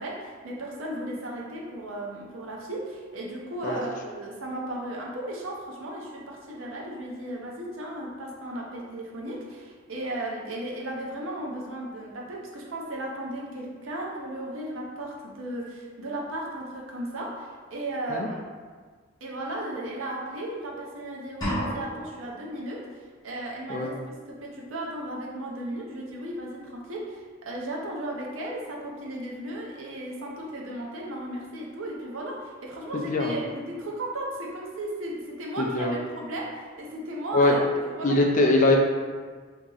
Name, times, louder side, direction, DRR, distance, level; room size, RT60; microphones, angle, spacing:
voice 1, 0.0-18.4 19.2-38.2 38.5-38.6, right 1 dB, 75° right, -2 dB, 0.7 m, -35 dB
sound 1, 21.4-22.4, equal, 20° left, 0.9 m, -31 dB
voice 2, 35.6-36.0 37.3-37.6 38.0-38.8, left 2 dB, 40° left, 1 dB, 0.4 m, -22 dB
2.9 x 2.6 x 3.8 m, 1.5 s
head